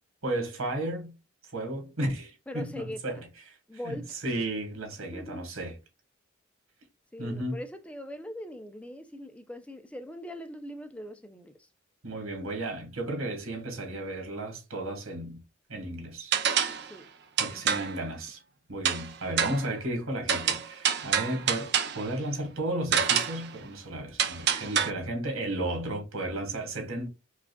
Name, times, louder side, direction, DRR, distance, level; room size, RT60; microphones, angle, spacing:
voice 1, 0.2-1.1 1.4-3.6 3.8-5.8 7.2-7.6 12.0-15.4 15.7-16.4 17.4-18.4 18.7-27.1, right 1 dB, 85° right, 1.5 m, -34 dB
voice 2, 2.5-3.2 3.7-4.2 5.0-5.5 7.1-11.7 16.7-17.1 17.5-17.8, equal, 5° left, 0.4 m, -41 dB
sound 1, 16.3-16.9 17.4-18.0 18.9-19.1 19.4-19.7 20.3-22.0 22.9-23.5 24.2-24.9, right 8 dB, 55° right, 0.6 m, -27 dB
4.9 x 2.4 x 2.2 m
head